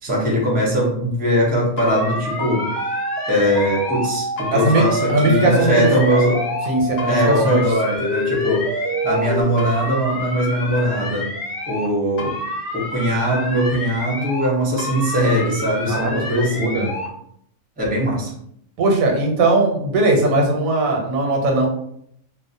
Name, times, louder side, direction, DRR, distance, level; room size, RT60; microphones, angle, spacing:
voice 1, 0.0-2.7 3.3-6.4 7.0-8.7 9.0-11.3 11.7-12.4 12.7-16.8 17.8-18.3, equal, 10° right, -4 dB, 0.4 m, -20 dB
sound 1, 1.8-4.1 4.4-6.7 7.0-9.3 9.6-11.9 12.2-14.5 14.8-17.1, left 2 dB, 60° left, 0.4 m, -30 dB
sound 2, 1.9-7.5 8.0-9.4, right 1 dB, 65° right, 0.7 m, -26 dB
voice 2, 4.5-5.9 6.7-7.6 15.9-16.9 18.8-21.7, right 2 dB, 90° right, 1 dB, 1.0 m, -19 dB
2.4 x 2.0 x 2.6 m, 0.71 s
omnidirectional pair, 1.4 m